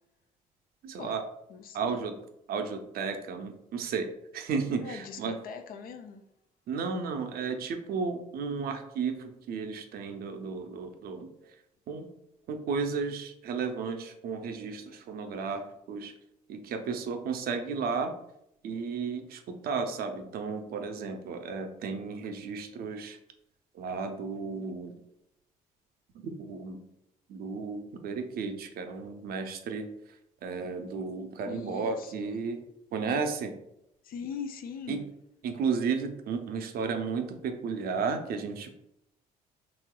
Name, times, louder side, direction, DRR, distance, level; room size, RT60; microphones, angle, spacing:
voice 1, 0.8-1.2 1.7-2.1 2.5-5.4 6.7-11.6 11.9-12.1 12.5-16.1 16.5-18.1 18.6-23.2 23.7-25.0 26.2-26.8 27.3-32.6 32.9-33.6 34.9-35.0 35.4-38.7, right 5 dB, 60° right, 0.5 m, -33 dB
voice 2, 1.5-2.1 4.8-6.2 31.5-32.4 34.0-35.0, left 6 dB, 55° left, 0.4 m, -41 dB
3.1 x 3.0 x 2.2 m
hypercardioid pair, 55°, 18 cm